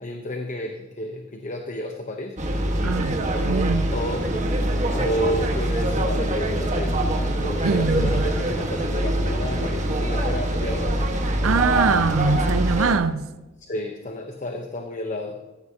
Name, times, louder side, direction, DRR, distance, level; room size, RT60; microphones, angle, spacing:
voice 1, 0.0-2.4 3.9-4.4 4.9-7.0 7.4-11.1 13.6-15.4, left 1 dB, 35° left, 1.0 m, -31 dB
sound 1, 2.4-13.0, right 1 dB, 35° right, 1.6 m, -24 dB
voice 2, 2.8-3.9 7.6-8.3 11.4-13.3, right 4 dB, 85° right, 0.6 m, -23 dB
16.5 x 14.5 x 2.9 m
head